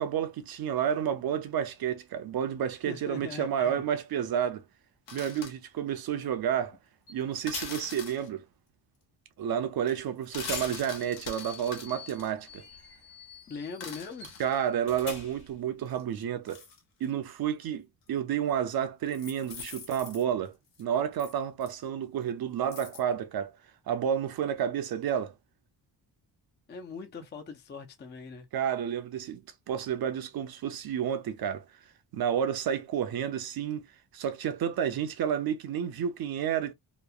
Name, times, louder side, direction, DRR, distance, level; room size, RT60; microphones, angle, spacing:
voice 1, 0.0-4.6 5.1-6.8 7.1-8.4 9.4-12.6 14.4-16.6 17.0-23.5 23.9-25.3 28.5-31.6 32.1-33.9 34.1-36.7, right 9 dB, 55° right, 0.6 m, -30 dB
voice 2, 2.9-3.8 13.5-14.3 26.7-28.5, left 5 dB, 25° left, 0.5 m, -41 dB
sound 1, 5.1-5.5 7.5-8.3 10.2-12.3 13.7-14.7 15.9-17.1 18.1-18.2 19.1-20.2 20.7-20.8 21.2-21.3 21.6-21.7 22.7-23.0, left 6 dB, 85° left, 1.0 m, -44 dB
sound 2, 7.1-7.2 7.5-8.0 9.9-10.0 10.3-15.6, left 4 dB, 65° left, 1.3 m, -44 dB
2.9 x 2.1 x 2.3 m
cardioid pair, 115°, 43 cm